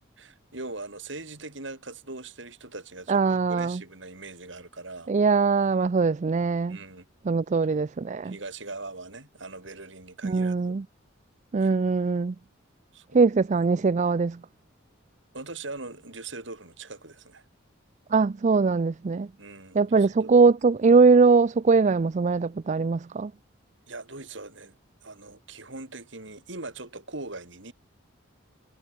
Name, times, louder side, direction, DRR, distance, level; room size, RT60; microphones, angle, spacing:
voice 1, 0.2-5.1 6.7-7.0 8.2-10.7 11.6-11.8 12.9-13.3 15.3-17.4 19.4-20.3 23.9-24.8 25.0-27.7, right 3 dB, 65° right, 4.2 m, -41 dB
voice 2, 3.1-3.8 5.1-6.8 7.3-8.4 10.2-10.8 11.5-12.3 13.1-14.4 18.1-19.3 19.7-23.3, right 4 dB, 35° right, 0.4 m, -21 dB
head